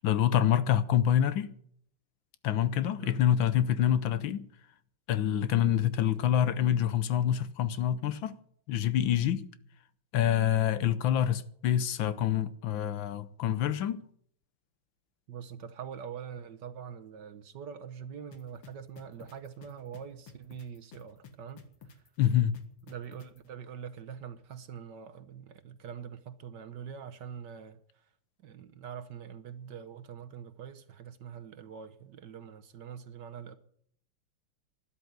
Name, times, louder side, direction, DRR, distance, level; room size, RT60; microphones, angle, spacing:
voice 1, 0.0-1.5 2.4-4.5 5.1-8.4 8.7-9.5 10.1-14.0 22.2-22.5, left 10 dB, 70° left, 1.5 m, -26 dB
voice 2, 15.3-22.0 22.9-28.1 28.4-33.6, right 8 dB, 60° right, 1.4 m, -44 dB
sound 1, 18.3-23.4, left 5 dB, 90° left, 2.6 m, -51 dB
12.5 x 11.5 x 9.4 m
omnidirectional pair, 2.3 m